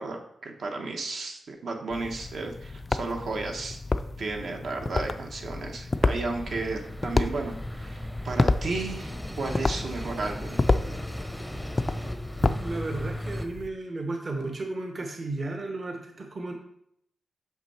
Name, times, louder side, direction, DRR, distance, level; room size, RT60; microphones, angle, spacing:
voice 1, 0.0-3.8 4.2-9.1 9.4-10.6, right 3 dB, 65° right, 2 dB, 1.1 m, -33 dB
sound 1, 1.9-13.7, left 3 dB, 25° left, 0.3 m, -30 dB
sound 2, 5.9-13.5, equal, ahead, 0.7 m, -37 dB
voice 2, 12.4-16.5, right 2 dB, 40° right, 3 dB, 0.9 m, -34 dB
6.4 x 5.9 x 4.3 m, 0.72 s
wide cardioid pair, 155°, 0 cm